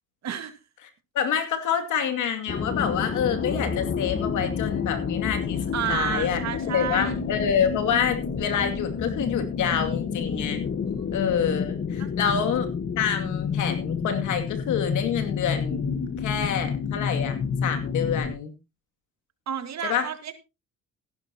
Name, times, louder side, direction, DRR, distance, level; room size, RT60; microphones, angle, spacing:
voice 1, 0.2-0.5 5.7-7.2 10.9-11.1 12.0-12.4 19.5-20.3, right 8 dB, 65° right, 10 dB, 1.9 m, -31 dB
voice 2, 1.1-5.6 5.9-6.4 6.7-10.6 11.1-12.7 13.0-17.4 17.6-18.5 19.8-20.1, left 8 dB, 80° left, 7 dB, 2.5 m, -27 dB
sound 1, 2.5-18.4, left 6 dB, 40° left, 1.4 m, -29 dB
15.5 x 12.0 x 2.9 m, 0.27 s
cardioid pair, 90°, 30 cm